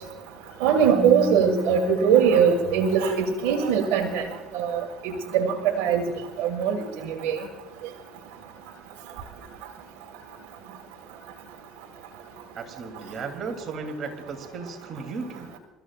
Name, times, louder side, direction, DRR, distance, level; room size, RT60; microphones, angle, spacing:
voice 1, 0.6-4.3 4.5-6.0 6.4-7.4, right 7 dB, 80° right, 0 dB, 1.8 m, -22 dB
Keyboard (musical), 0.9-3.6, equal, 20° right, 1.9 m, -35 dB
voice 2, 12.5-15.6, right 4 dB, 45° right, 5 dB, 3.0 m, -35 dB
29.0 x 14.5 x 2.5 m, 1.2 s
supercardioid pair, 100°, 0 cm